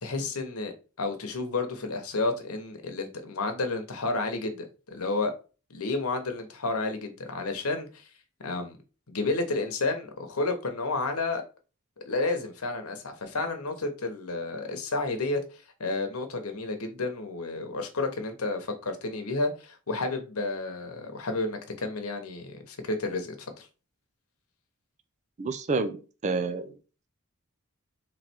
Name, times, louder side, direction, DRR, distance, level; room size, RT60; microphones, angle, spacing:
voice 1, 0.0-0.7 1.0-5.3 5.7-8.1 8.4-8.8 9.1-11.4 12.1-23.7, left 3 dB, 85° left, 1.0 m, -31 dB
voice 2, 25.4-26.7, right 3 dB, 35° right, 0.4 m, -29 dB
3.7 x 3.3 x 4.4 m
head